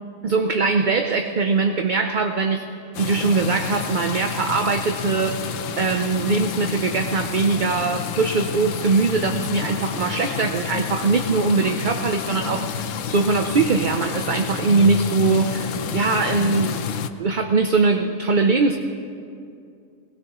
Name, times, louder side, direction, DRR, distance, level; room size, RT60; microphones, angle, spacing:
voice 1, 0.2-2.6 3.0-5.4 5.8-16.8 17.2-18.8, right 4 dB, 45° right, 5 dB, 0.7 m, -21 dB
sound 1, 2.9-17.1, left 8 dB, 80° left, 1.0 m, -29 dB
22.0 x 19.0 x 3.1 m, 2.5 s
omnidirectional pair, 1.3 m